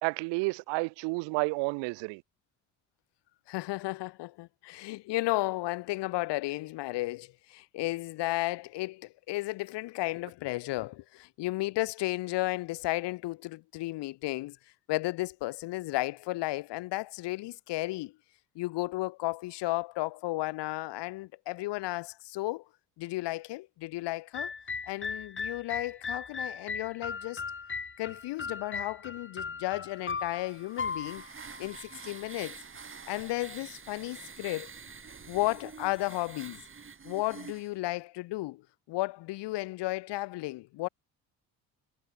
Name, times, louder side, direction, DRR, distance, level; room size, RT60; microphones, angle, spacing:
voice 1, 0.0-2.2, right 29 dB, 80° right, 0.7 m, -31 dB
voice 2, 3.5-14.6 14.9-18.1 18.5-22.6 23.0-24.5 24.9-27.4 28.0-31.2 31.6-32.6 33.1-34.7 35.3-36.6 37.0-38.6 38.9-40.9, left 19 dB, 70° left, 1.6 m, -33 dB
sound 1, 24.3-32.4, left 5 dB, 30° left, 2.5 m, -38 dB
sound 2, 30.2-37.7, right 5 dB, 30° right, 2.1 m, -47 dB
supercardioid pair, 65°, 43 cm